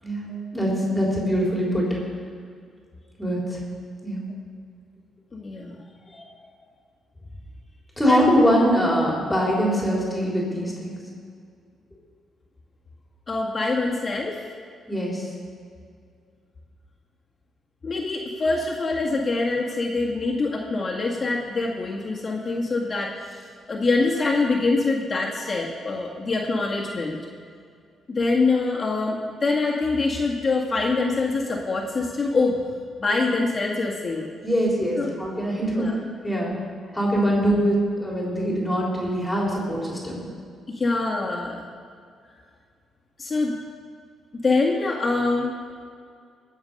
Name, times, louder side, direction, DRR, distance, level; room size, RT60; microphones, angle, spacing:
voice 1, 0.5-1.9 3.2-3.6 4.0-4.2 8.0-11.0 14.9-15.3 34.4-35.9 36.2-36.6 36.9-40.2, equal, 10° left, -3 dB, 3.8 m, -23 dB
voice 2, 5.3-5.8 6.1-6.3 8.1-8.3 13.3-14.4 17.8-23.4 23.7-27.2 28.1-32.6 33.0-34.3 35.0-35.1 35.7-36.0 36.9-37.0 40.8-41.6 43.2-43.6 44.4-45.6, left 3 dB, 35° left, -2 dB, 1.8 m, -24 dB
19.5 x 7.3 x 5.4 m, 2.2 s
cardioid pair, 90°, 0 cm